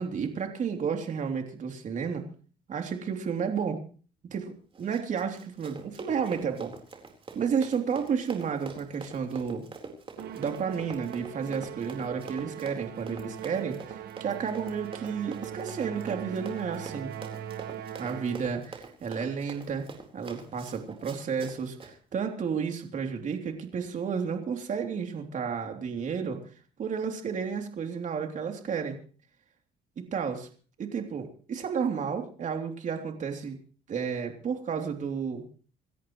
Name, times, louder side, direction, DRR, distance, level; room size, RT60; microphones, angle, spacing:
voice 1, 0.0-2.2 2.7-3.8 4.3-6.7 7.3-9.6 10.3-17.1 18.0-19.9 20.1-26.4 26.8-29.0 30.0-30.5 30.8-33.6 33.9-35.4, right 6 dB, 50° right, 4 dB, 3.2 m, -32 dB
Run, 4.7-21.9, right 4 dB, 30° right, 4.1 m, -45 dB
Musical instrument, 10.2-18.7, right 10 dB, 70° right, 1.5 m, -41 dB
27.0 x 13.5 x 3.2 m, 0.40 s
cardioid pair, 110°, 17 cm